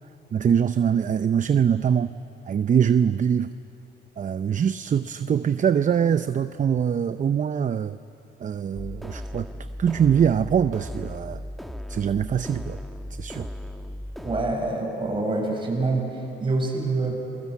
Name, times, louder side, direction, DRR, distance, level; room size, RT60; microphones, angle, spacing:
voice 1, 0.3-2.1 2.4-3.5 4.2-8.0 8.4-9.5 9.8-11.4 11.9-12.8 13.1-13.5, right 8 dB, 40° right, 12 dB, 0.6 m, -23 dB
sound 1, 8.7-14.5, left 1 dB, ahead, 1.6 m, -36 dB
voice 2, 14.2-16.1 16.4-17.2, right 2 dB, 25° right, 0 dB, 7.6 m, -25 dB
28.5 x 22.0 x 8.4 m, 2.8 s
cardioid pair, 90°, 20 cm